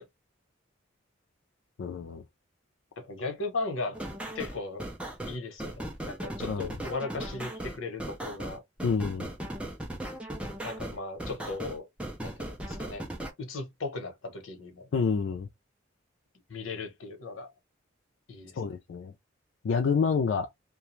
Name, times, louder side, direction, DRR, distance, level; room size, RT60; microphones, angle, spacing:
voice 1, 1.8-2.2 6.5-6.6 8.8-9.3 14.9-15.5 18.6-19.1 19.6-20.5, left 5 dB, 65° left, 0.4 m, -28 dB
voice 2, 3.0-4.0 4.3-4.8 5.2-8.6 10.6-11.9 12.2-13.1 13.4-14.9 16.5-17.5 18.3-18.8, left 3 dB, 85° left, 0.9 m, -37 dB
sound 1, 3.9-13.3, right 1 dB, 5° right, 0.5 m, -37 dB
2.4 x 2.2 x 3.0 m
head